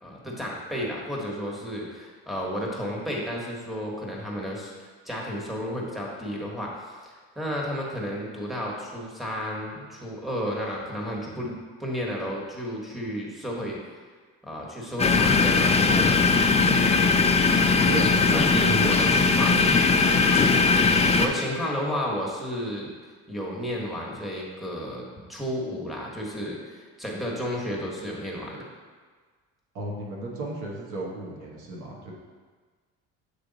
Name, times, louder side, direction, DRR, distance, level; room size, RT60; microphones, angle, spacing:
voice 1, 0.0-4.7 5.0-13.8 14.4-16.2 17.9-19.5 20.1-20.3 21.2-22.9 23.3-25.0 25.3-28.6, equal, ahead, -2 dB, 1.3 m, -32 dB
sound 1, 15.0-21.3, left 4 dB, 20° left, 0.5 m, -20 dB
voice 2, 17.8-19.0 29.7-32.1, right 2 dB, 75° right, -2 dB, 1.4 m, -34 dB
8.1 x 3.3 x 4.0 m, 1.5 s
cardioid pair, 95°, 30 cm